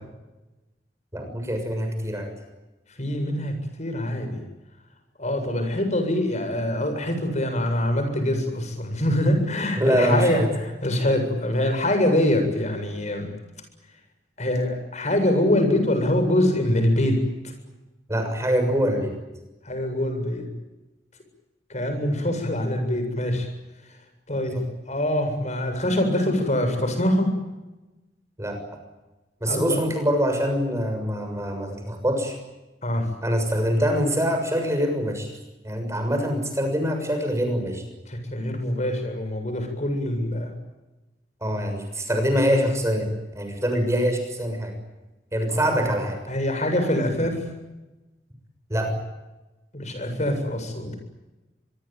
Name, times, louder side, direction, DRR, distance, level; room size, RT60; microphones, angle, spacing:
voice 1, 1.1-2.3 9.8-10.5 18.1-19.1 24.5-24.6 28.4-28.6 29.4-32.3 33.2-35.3 35.6-37.8 41.4-43.1 43.3-44.7 45.3-46.2 48.7-48.9, equal, 15° right, 5 dB, 6.7 m, -24 dB
voice 2, 3.0-4.4 5.2-13.3 14.4-17.2 17.4-17.5 19.7-20.5 21.7-23.5 24.3-24.6 24.9-27.3 29.5-29.8 32.8-33.1 38.1-40.5 45.5-45.7 46.3-47.4 49.7-51.0, left 1 dB, 40° left, 6 dB, 7.5 m, -24 dB
26.0 x 22.5 x 9.1 m, 1.1 s
head